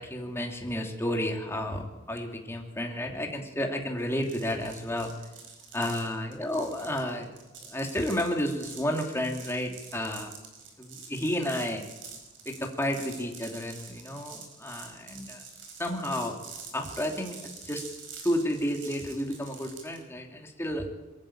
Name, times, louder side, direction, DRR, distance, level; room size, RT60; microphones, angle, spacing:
voice 1, 0.0-5.1 5.7-7.3 7.6-10.3 10.8-11.8 12.4-15.4 15.8-16.4 16.7-17.8 18.2-20.9, left 1 dB, 15° left, 2 dB, 2.8 m, -31 dB
sound 1, 4.2-20.0, right 5 dB, 75° right, 5.0 m, -46 dB
22.5 x 14.0 x 8.8 m, 1.1 s
head